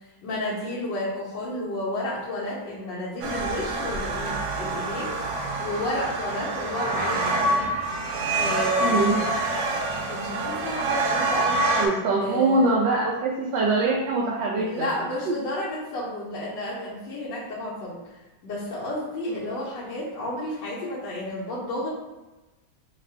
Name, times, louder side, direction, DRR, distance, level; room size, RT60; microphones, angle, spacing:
voice 1, 0.2-5.2 5.6-7.7 8.3-9.3 10.1-11.6 12.2-12.7 14.6-18.0 18.4-21.9, left 1 dB, 80° left, -9 dB, 1.6 m, -31 dB
sound 1, 3.2-11.9, right 2 dB, 75° right, 1.1 m, -26 dB
voice 2, 8.8-9.2 11.8-15.4 19.3-19.5, right 3 dB, 90° right, -3 dB, 1.3 m, -24 dB
3.7 x 2.4 x 3.3 m, 1.1 s
omnidirectional pair, 1.9 m